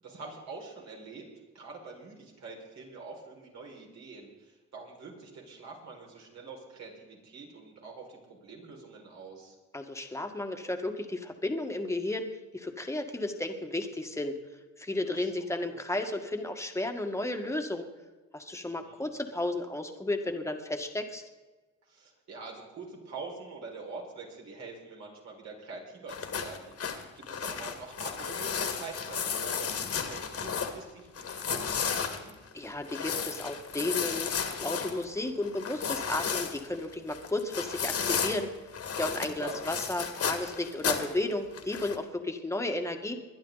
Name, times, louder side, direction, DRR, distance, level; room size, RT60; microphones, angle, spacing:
voice 1, 0.0-1.2 1.5-9.6 15.2-15.8 18.7-19.1 21.9-32.3 39.1-39.6, right 4 dB, 65° right, -1 dB, 5.4 m, -45 dB
voice 2, 9.7-14.4 14.8-17.9 18.3-21.3 32.5-38.5 38.9-43.2, left 2 dB, 10° left, 4 dB, 1.8 m, -33 dB
sound 1, 26.1-30.8 31.2-38.4 38.7-41.2 41.5-42.0, left 6 dB, 50° left, 2.0 m, -33 dB
21.5 x 11.5 x 4.1 m, 1.2 s
cardioid pair, 90°, 30 cm